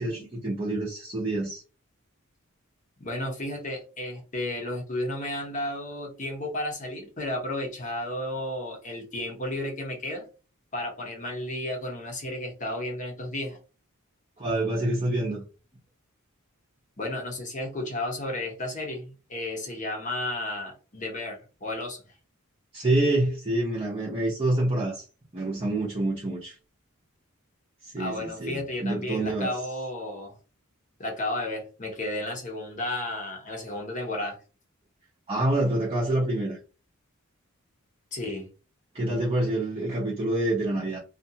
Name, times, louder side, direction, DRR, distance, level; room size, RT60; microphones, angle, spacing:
voice 1, 0.0-1.6 14.4-15.4 22.7-25.0 25.3-26.6 27.8-29.5 35.3-36.6 38.9-41.0, right 1 dB, 30° right, 0.7 m, -27 dB
voice 2, 3.0-10.2 10.7-13.6 17.0-22.0 28.0-30.4 31.0-34.4 38.1-38.5, left 1 dB, 35° left, 0.9 m, -33 dB
2.5 x 2.5 x 2.7 m
head